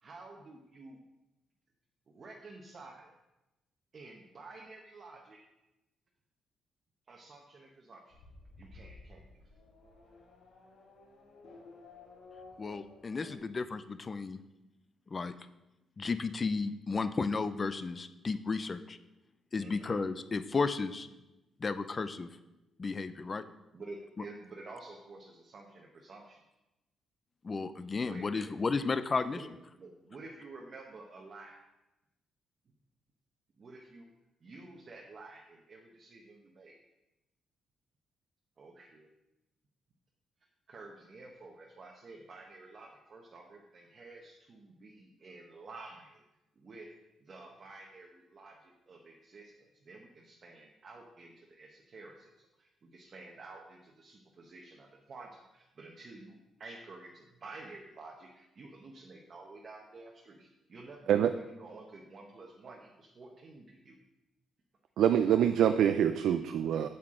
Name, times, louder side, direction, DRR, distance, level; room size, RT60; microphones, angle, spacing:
voice 1, 0.0-1.0 2.1-3.1 3.9-5.4 7.1-8.2 8.6-9.4 19.6-19.9 23.7-26.4 28.0-29.5 29.8-31.6 33.6-34.1 34.4-36.8 38.6-39.1 40.7-46.2 46.6-46.9 47.2-64.0, right 3 dB, 35° right, 0 dB, 0.9 m, -51 dB
Race car auto racing / Accelerating revving vroom, 8.1-13.4, left 3 dB, 70° left, 2.2 m, -54 dB
voice 2, 12.6-14.4 15.1-15.3 16.0-19.0 19.5-21.1 21.6-22.3 22.8-23.4 24.2-24.3 27.4-29.5, left 4 dB, 25° left, 12 dB, 0.4 m, -33 dB
voice 3, 65.0-66.9, right 9 dB, 70° right, 9 dB, 0.4 m, -25 dB
8.5 x 8.0 x 3.7 m, 0.98 s
cardioid pair, 170°, 0 cm